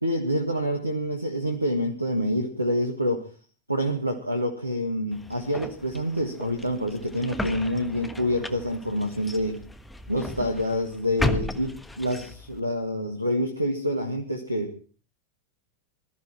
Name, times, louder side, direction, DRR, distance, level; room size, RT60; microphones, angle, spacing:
voice 1, 0.0-3.3 3.7-9.6 10.1-14.8, equal, 85° right, 4 dB, 1.6 m, -27 dB
sound 1, 5.1-12.6, left 2 dB, 5° left, 1.3 m, -35 dB
21.0 x 13.5 x 4.4 m, 0.39 s
figure-of-eight pair, 90°, 0 cm